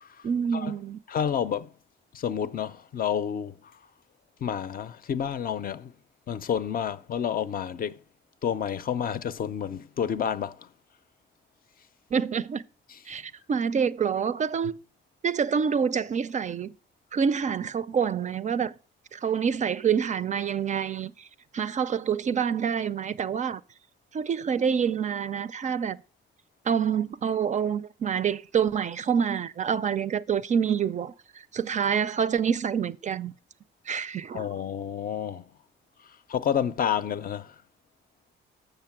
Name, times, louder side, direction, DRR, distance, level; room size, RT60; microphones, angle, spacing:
voice 1, 0.2-1.0 12.1-12.6 13.1-14.8 15.2-16.7 17.1-18.7 19.1-21.3 21.5-23.6 24.1-26.0 26.7-33.3 33.9-34.5, right 7 dB, 40° right, 0.4 m, -27 dB
voice 2, 1.1-1.7 2.1-3.5 4.4-5.9 6.3-8.0 8.4-10.7 12.9-13.0 34.3-35.4 36.3-37.5, left 8 dB, 45° left, 0.5 m, -29 dB
6.7 x 6.5 x 5.9 m
cardioid pair, 90°, 20 cm